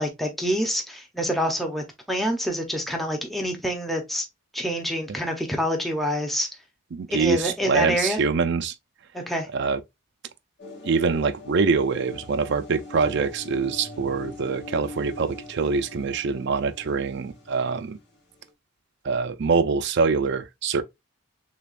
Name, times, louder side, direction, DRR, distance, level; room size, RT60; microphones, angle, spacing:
voice 1, 0.0-4.3 4.5-6.5 7.1-8.2 9.1-9.5, equal, ahead, 0.8 m, -27 dB
voice 2, 6.9-8.7 9.5-9.8 10.8-18.0 19.0-20.8, right 4 dB, 55° right, 0.5 m, -24 dB
sound 1, 10.6-18.5, left 2 dB, 50° left, 1.9 m, -42 dB
6.7 x 2.4 x 2.5 m
head